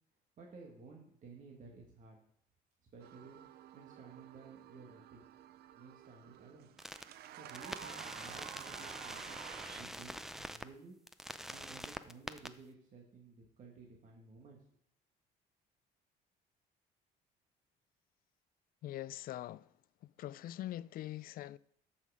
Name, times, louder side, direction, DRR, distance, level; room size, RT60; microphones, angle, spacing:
voice 1, 0.4-2.2 2.9-5.2 5.8-6.7 7.3-11.0 11.5-14.6, right 4 dB, 50° right, 1.9 m, -55 dB
sound 1, 3.0-9.8, right 12 dB, 70° right, 0.6 m, -51 dB
sound 2, 6.8-7.0 7.5-10.6 11.1-12.5, equal, ahead, 0.5 m, -45 dB
voice 2, 18.8-19.7 20.0-21.6, left 14 dB, 60° left, 0.4 m, -43 dB
13.5 x 5.9 x 4.9 m
cardioid pair, 110°, 17 cm